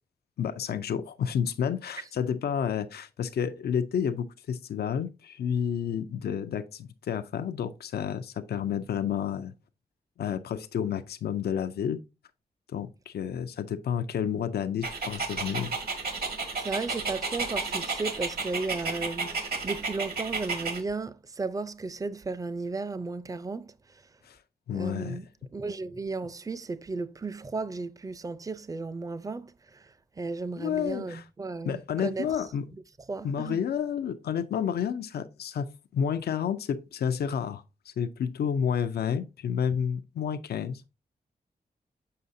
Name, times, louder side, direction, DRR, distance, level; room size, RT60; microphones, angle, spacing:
voice 1, 0.4-9.5 10.2-12.0 12.7-15.7 24.2-24.4 24.7-25.2 30.6-31.2 31.6-32.6 33.2-35.7 35.9-40.8, left 8 dB, 90° left, 0.5 m, -30 dB
Dog, 14.8-20.8, right 4 dB, 75° right, 1.7 m, -32 dB
voice 2, 16.6-24.0 24.7-25.3 25.5-32.3 33.1-33.6, right 3 dB, 20° right, 0.5 m, -35 dB
6.7 x 5.6 x 2.6 m
cardioid pair, 80°, 16 cm